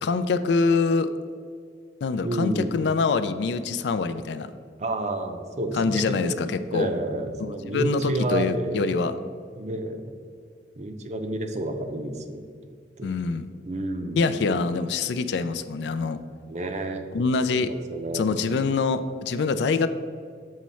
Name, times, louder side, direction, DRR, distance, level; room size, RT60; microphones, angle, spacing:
voice 1, 0.0-1.1 2.0-4.5 5.8-6.9 7.4-9.1 13.0-13.5 14.2-16.2 17.1-17.7 18.1-19.9, left 4 dB, 65° left, 11 dB, 0.3 m, -25 dB
voice 2, 2.2-2.8 4.8-6.2 6.7-8.9 9.6-10.0 10.8-12.4 13.0-13.1 13.7-14.4 16.5-17.1 17.5-18.4, right 1 dB, 40° right, 6 dB, 0.5 m, -30 dB
7.4 x 3.1 x 5.5 m, 2.1 s
head